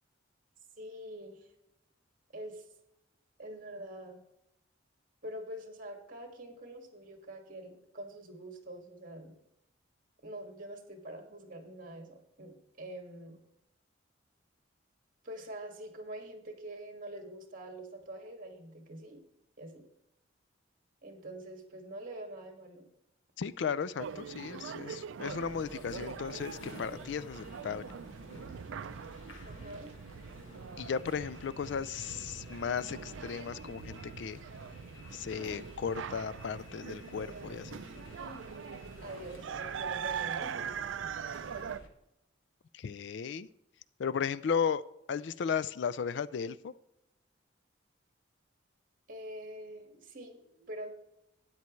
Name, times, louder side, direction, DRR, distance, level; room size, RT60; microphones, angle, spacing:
voice 1, 0.8-1.4 2.3-2.6 3.4-4.2 5.2-9.4 10.2-13.4 15.2-19.2 19.6-19.8 21.0-22.9 29.5-29.9 38.2-38.4 39.0-40.7 49.1-50.9, right 1 dB, 45° right, 3 dB, 2.0 m, -45 dB
voice 2, 23.4-27.8 30.8-34.4 35.1-37.8 42.7-43.5 44.0-46.7, left 6 dB, 60° left, 16 dB, 0.4 m, -35 dB
sound 1, 24.0-41.8, right 7 dB, 70° right, 0.4 m, -42 dB
sound 2, 25.2-41.9, left 1 dB, 75° left, 1.6 m, -51 dB
12.5 x 9.5 x 3.2 m, 0.86 s
head